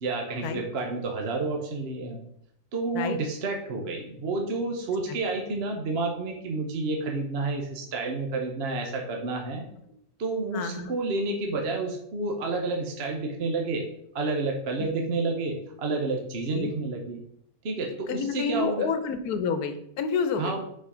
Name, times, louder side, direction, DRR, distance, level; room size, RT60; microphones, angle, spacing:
voice 1, 0.0-2.2 2.7-9.6 10.2-13.9 14.1-17.2 17.6-18.9 20.4-20.6, right 3 dB, 50° right, 1 dB, 1.0 m, -30 dB
voice 2, 10.5-10.9 14.8-14.9 16.5-16.7 18.1-20.6, left 5 dB, 85° left, 9 dB, 1.3 m, -29 dB
5.7 x 4.6 x 5.0 m, 0.73 s
omnidirectional pair, 1.6 m